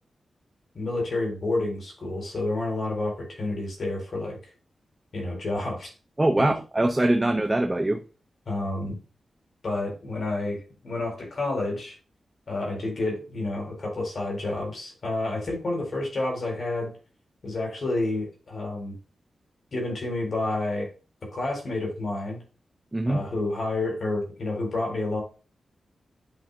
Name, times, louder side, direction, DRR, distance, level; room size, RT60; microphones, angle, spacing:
voice 1, 0.7-4.4 5.1-5.9 6.4-6.5 8.5-9.0 9.6-12.0 12.5-16.9 17.4-18.9 19.7-20.9 21.3-22.4 23.1-25.2, left 2 dB, 55° left, 3.9 m, -29 dB
voice 2, 6.2-8.0 22.9-23.2, right 1 dB, 15° right, 0.7 m, -23 dB
11.0 x 5.6 x 2.3 m
wide cardioid pair, 105°, 0 cm